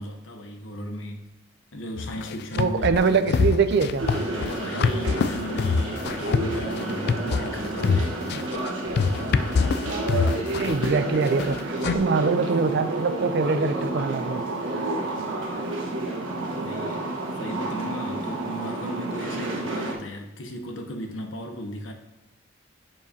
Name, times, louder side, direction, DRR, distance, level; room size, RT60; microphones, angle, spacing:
voice 1, 0.0-1.3 1.7-3.4 4.3-8.2 16.5-17.0 17.3-21.9, equal, 75° left, 4 dB, 0.9 m, -36 dB
sound 1, 2.0-11.9, left 5 dB, 60° left, 0.4 m, -25 dB
voice 2, 2.6-4.1 10.6-14.4, right 4 dB, 60° right, 11 dB, 0.4 m, -23 dB
sound 2, 4.0-19.9, right 2 dB, 90° right, 1.3 m, -30 dB
10.5 x 4.8 x 2.8 m, 1.0 s
head